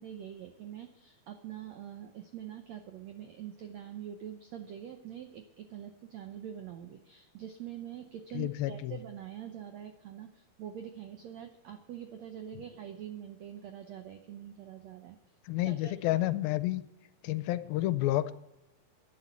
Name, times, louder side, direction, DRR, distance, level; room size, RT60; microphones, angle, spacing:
voice 1, 0.0-15.2 15.6-15.9, right 10 dB, 80° right, 7 dB, 1.5 m, -44 dB
voice 2, 8.3-9.0 15.5-16.8 17.2-18.3, left 15 dB, 80° left, 14 dB, 2.4 m, -30 dB
12.0 x 10.5 x 8.3 m, 0.95 s
omnidirectional pair, 4.3 m